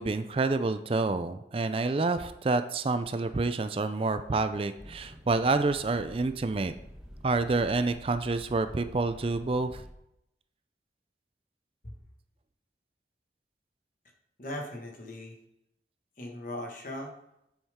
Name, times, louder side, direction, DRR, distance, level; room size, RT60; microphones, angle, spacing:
voice 1, 0.0-6.7 7.2-9.8, right 3 dB, 30° right, 11 dB, 0.4 m, -28 dB
sound 1, 4.8-9.9, equal, ahead, 1.2 m, -49 dB
voice 2, 14.4-15.4 16.2-17.1, left 1 dB, 50° left, 1 dB, 1.6 m, -38 dB
8.6 x 7.2 x 3.6 m, 0.81 s
head